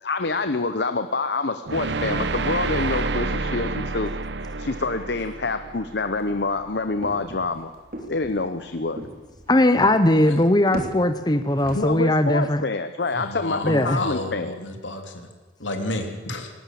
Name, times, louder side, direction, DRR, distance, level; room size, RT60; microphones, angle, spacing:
voice 1, 0.0-4.1 4.6-7.7 8.1-9.1 11.7-14.6, left 3 dB, 60° left, 10 dB, 0.8 m, -26 dB
sound 1, 1.6-6.7, right 3 dB, 65° right, 0.9 m, -29 dB
sound 2, 6.2-11.8, right 1 dB, 50° right, 3.7 m, -39 dB
voice 2, 9.5-12.6 13.6-14.0, left 1 dB, 20° left, 9 dB, 0.8 m, -19 dB
voice 3, 13.1-15.3 15.6-16.5, left 1 dB, 80° left, 5 dB, 3.0 m, -31 dB
19.5 x 18.5 x 7.6 m, 1.4 s
head